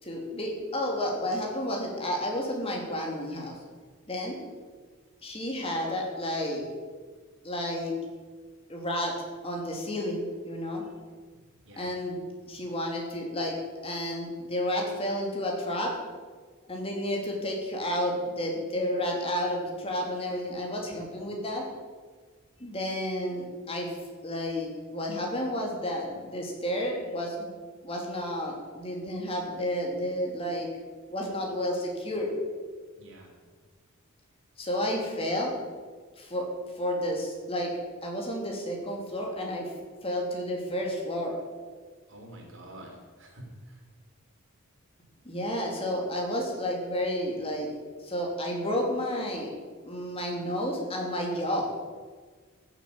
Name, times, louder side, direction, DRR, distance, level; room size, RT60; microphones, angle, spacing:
voice 1, 0.0-3.6 4.1-4.4 5.2-6.6 7.4-7.9 8.7-9.1 9.4-10.8 11.8-12.2 12.5-13.6 13.8-15.9 16.7-21.6 22.6-24.0 24.2-27.5 27.8-30.7 31.1-32.3 34.6-35.5 36.2-36.4 36.7-37.7 38.0-39.7 40.0-41.3 45.2-47.7 48.0-49.5 49.8-51.7, equal, 25° left, 0 dB, 3.1 m, -31 dB
voice 2, 33.0-33.3 42.1-43.8, right 1 dB, 60° right, 1 dB, 3.9 m, -47 dB
14.5 x 8.1 x 8.7 m, 1.5 s
head